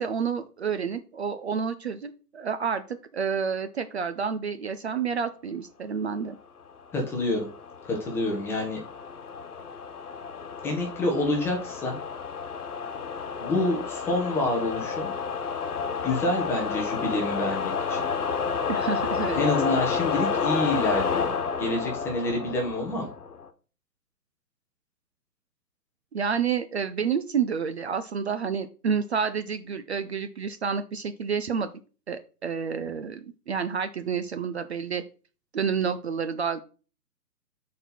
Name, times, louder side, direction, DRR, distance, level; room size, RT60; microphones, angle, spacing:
voice 1, 0.0-2.8 3.1-6.3 18.7-19.4 26.1-31.7 32.1-35.0 35.5-36.6, right 6 dB, 40° right, 10 dB, 0.6 m, -29 dB
voice 2, 6.9-7.5 7.8-8.8 10.6-12.0 13.4-15.1 16.0-18.1 19.3-23.1, left 2 dB, 5° left, 0 dB, 0.8 m, -27 dB
sound 1, 7.0-23.5, left 6 dB, 65° left, 1.3 m, -30 dB
7.8 x 4.2 x 4.3 m, 0.36 s
figure-of-eight pair, 135°, 49 cm